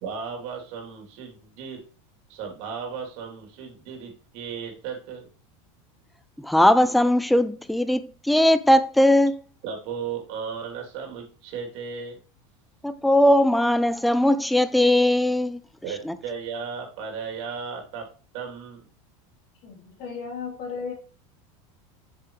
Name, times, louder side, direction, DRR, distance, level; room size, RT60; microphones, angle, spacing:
voice 1, 0.0-1.8 2.3-5.3 9.6-12.2 15.8-18.1 18.3-18.8, right 6 dB, 60° right, 3.2 m, -35 dB
voice 2, 6.4-9.4 12.8-15.6 16.1-16.2, left 1 dB, ahead, 0.3 m, -19 dB
voice 3, 19.6-20.9, left 5 dB, 50° left, 3.5 m, -35 dB
8.4 x 6.7 x 3.1 m
supercardioid pair, 150°, 17 cm